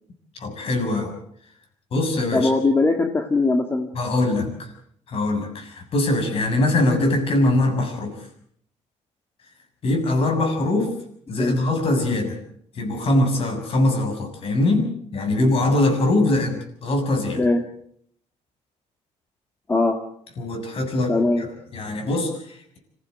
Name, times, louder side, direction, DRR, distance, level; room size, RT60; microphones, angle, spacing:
voice 1, 0.4-1.1 1.9-2.5 4.0-4.7 5.1-8.1 9.8-10.9 11.3-12.4 12.8-17.4 20.4-22.8, left 2 dB, 50° left, 4 dB, 6.9 m, -22 dB
voice 2, 2.3-3.9 11.4-11.6 17.4-17.6 19.7-20.0 21.1-21.5, left 3 dB, 20° left, 4 dB, 1.8 m, -20 dB
26.0 x 15.5 x 8.0 m, 0.66 s
cardioid pair, 125°, 12 cm